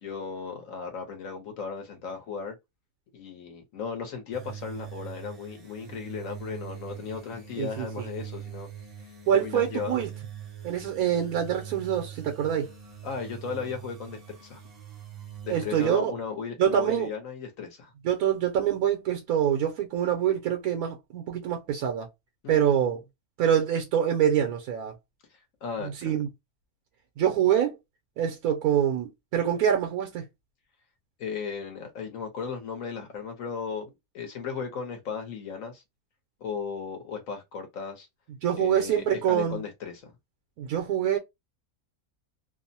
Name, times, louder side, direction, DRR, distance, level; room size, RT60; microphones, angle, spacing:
voice 1, 0.0-2.6 3.1-8.7 9.3-10.0 13.0-14.6 15.4-17.9 22.4-22.9 25.6-26.2 31.2-35.8 36.4-38.1 38.6-40.1, left 6 dB, 65° left, 1.2 m, -36 dB
sound 1, 4.3-15.8, right 9 dB, 35° right, 0.6 m, -43 dB
voice 2, 7.6-8.1 9.3-10.1 10.6-12.7 15.5-16.1 16.6-17.1 18.0-22.1 22.5-23.0 23.4-24.9 25.8-26.3 27.2-27.8 28.2-30.2 38.4-39.6 40.6-41.2, right 9 dB, 80° right, 1.1 m, -25 dB
2.9 x 2.0 x 2.6 m
omnidirectional pair, 1.6 m